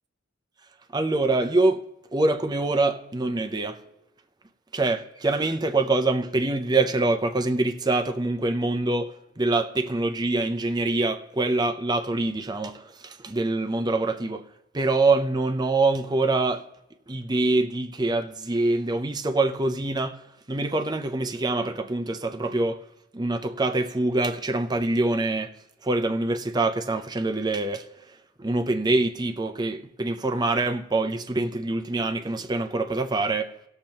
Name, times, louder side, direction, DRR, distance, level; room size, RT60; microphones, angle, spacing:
voice 1, 0.9-3.8 4.7-14.5 14.7-16.7 17.1-20.2 20.5-22.8 23.1-25.5 25.8-27.8 28.4-33.5, right 2 dB, 20° right, 0.6 m, -25 dB
19.0 x 6.6 x 2.9 m
head